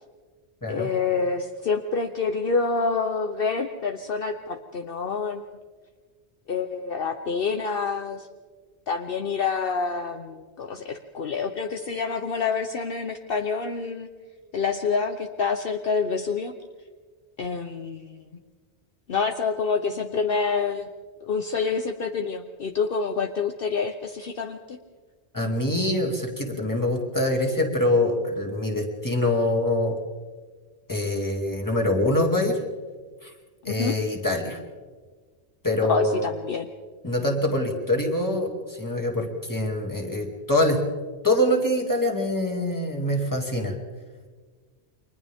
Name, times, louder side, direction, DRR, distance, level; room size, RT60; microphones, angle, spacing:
voice 1, 0.7-5.4 6.5-8.3 8.9-14.1 14.5-16.5 17.4-18.4 19.1-20.9 21.2-24.8 33.6-33.9 35.8-36.7, left 5 dB, 60° left, 6 dB, 1.1 m, -27 dB
voice 2, 25.3-30.0 30.9-32.6 33.2-33.3 33.6-34.6 35.6-36.3 37.0-40.8 41.2-43.8, left 1 dB, 15° left, 0 dB, 2.7 m, -24 dB
30.0 x 24.0 x 3.6 m, 1.5 s
omnidirectional pair, 1.1 m